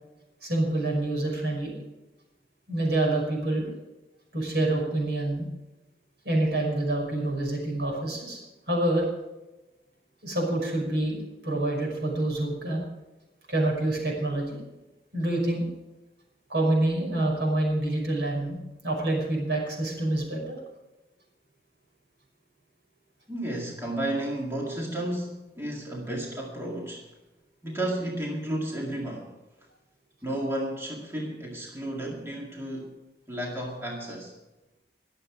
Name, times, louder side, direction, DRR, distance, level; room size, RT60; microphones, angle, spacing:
voice 1, 0.4-1.8 2.7-3.7 4.3-5.5 6.2-8.4 8.7-9.1 10.2-11.2 11.4-12.8 13.5-14.6 15.1-15.7 16.5-18.6 18.8-20.6, right 1 dB, 80° right, -1 dB, 5.7 m, -27 dB
voice 2, 23.3-27.1 27.6-29.3 30.2-32.9 33.3-34.3, right 1 dB, 15° right, -2 dB, 2.0 m, -32 dB
22.5 x 7.8 x 4.8 m, 1.0 s
head